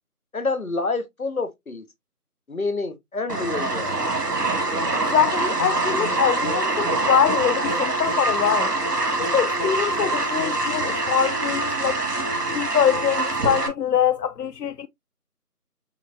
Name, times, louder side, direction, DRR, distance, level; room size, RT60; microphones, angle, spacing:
voice 1, 0.3-1.8 2.5-3.9, left 3 dB, 65° left, 1.2 m, -28 dB
sound 1, 3.3-13.7, right 2 dB, 80° right, 1.9 m, -24 dB
voice 2, 5.1-8.7 9.2-12.0 12.5-14.9, left 8 dB, 85° left, 0.5 m, -23 dB
7.1 x 2.9 x 2.6 m
figure-of-eight pair, 175°, 47 cm